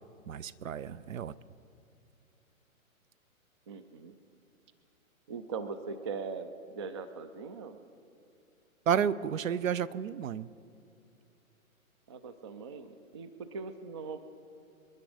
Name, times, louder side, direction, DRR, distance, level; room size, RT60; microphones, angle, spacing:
voice 1, 0.3-1.3 8.9-10.5, right 8 dB, 70° right, 18 dB, 0.7 m, -31 dB
voice 2, 3.7-4.1 5.3-7.8 12.1-14.2, right 5 dB, 20° right, 11 dB, 0.4 m, -40 dB
27.0 x 10.5 x 4.9 m, 2.5 s
hypercardioid pair, 130°, 42 cm